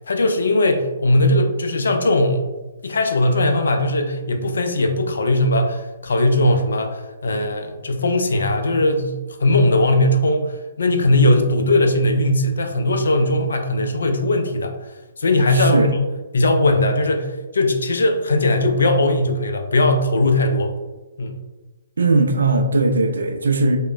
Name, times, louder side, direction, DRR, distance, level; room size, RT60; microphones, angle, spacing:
voice 1, 0.1-2.4 2.8-14.7 15.2-16.0 16.3-20.7 21.2-21.4, left 1 dB, 60° left, 5 dB, 0.3 m, -19 dB
voice 2, 15.5-15.9 22.0-23.8, right 3 dB, 65° right, 5 dB, 0.3 m, -18 dB
3.0 x 2.1 x 2.3 m, 1.1 s
figure-of-eight pair, 125°, 0 cm